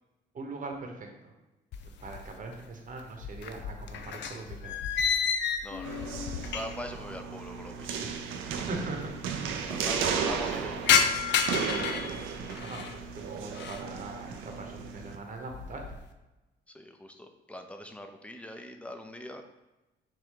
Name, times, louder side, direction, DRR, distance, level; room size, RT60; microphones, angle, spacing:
voice 1, 0.3-1.3 2.0-4.8 6.4-6.5 8.0-8.4 8.7-9.0 9.5-10.0 11.7-12.1 12.6-16.0, right 3 dB, 40° right, 2 dB, 0.9 m, -41 dB
sound 1, 1.7-2.6 2.9-7.0 7.2-7.3 8.2-8.3 8.5-8.6 8.9-9.4 9.8-13.0 13.4-13.9 14.4-14.7 15.2-16.1, left 7 dB, 65° left, 0.5 m, -31 dB
voice 2, 5.6-6.2 6.5-8.0 9.7-11.0 16.7-19.4, left 1 dB, 5° left, 5 dB, 0.6 m, -42 dB
sound 2, 5.8-15.2, right 6 dB, 90° right, 0.5 m, -35 dB
6.4 x 2.2 x 3.7 m, 1.0 s
cardioid pair, 90°, 20 cm